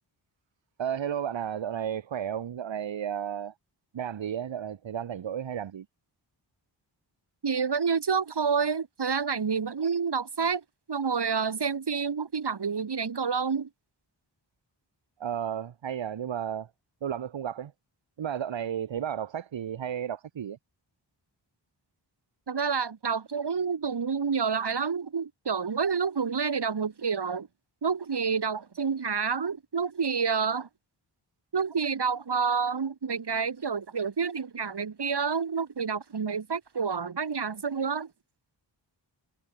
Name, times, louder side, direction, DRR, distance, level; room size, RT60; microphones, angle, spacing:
voice 1, 0.8-3.5 3.9-5.9 15.2-16.7 17.0-17.7 18.2-20.6, right 9 dB, 75° right, 1.2 m, -33 dB
voice 2, 7.4-13.7 22.5-27.5 27.8-30.7 31.5-38.1, right 5 dB, 60° right, 2.5 m, -29 dB
cardioid pair, 55°, 46 cm